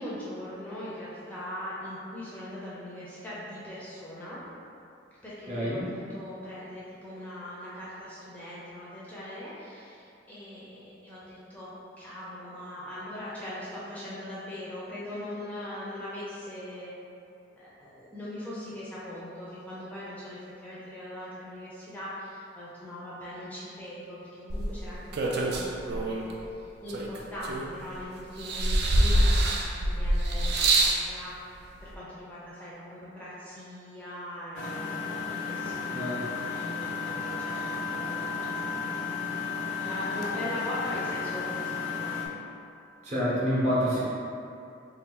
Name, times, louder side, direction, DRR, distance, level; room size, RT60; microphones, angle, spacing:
voice 1, 0.0-4.4 5.2-16.9 17.5-37.6 37.9-39.1 39.3-42.1, left 1 dB, 10° left, -9 dB, 0.5 m, -40 dB
voice 2, 5.5-5.8 35.9-36.2 43.0-44.0, equal, 40° right, -8 dB, 0.9 m, -27 dB
sound 1, 24.5-26.3 26.9-28.0 28.4-31.0 31.9-32.0, right 1 dB, 60° right, 0.4 m, -25 dB
Engine, 34.6-42.3, left 5 dB, 90° left, 0.5 m, -33 dB
2.7 x 2.5 x 3.7 m, 2.6 s
head